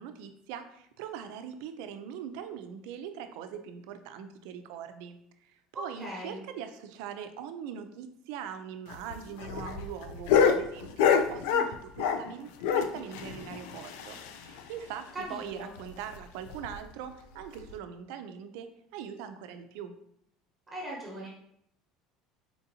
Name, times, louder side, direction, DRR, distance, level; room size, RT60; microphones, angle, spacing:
voice 1, 0.0-19.9, right 8 dB, 75° right, 8 dB, 0.4 m, -42 dB
voice 2, 5.7-6.4 15.1-15.7 20.7-21.3, right 1 dB, 15° right, -5 dB, 1.0 m, -39 dB
sound 1, 8.9-12.3 12.6-14.6 14.9-15.0 15.3-15.4 15.8-15.9 16.5-16.8 17.6-17.7, left 7 dB, 80° left, 0.3 m, -27 dB
4.3 x 2.7 x 2.7 m, 0.71 s
cardioid pair, 155°, 0 cm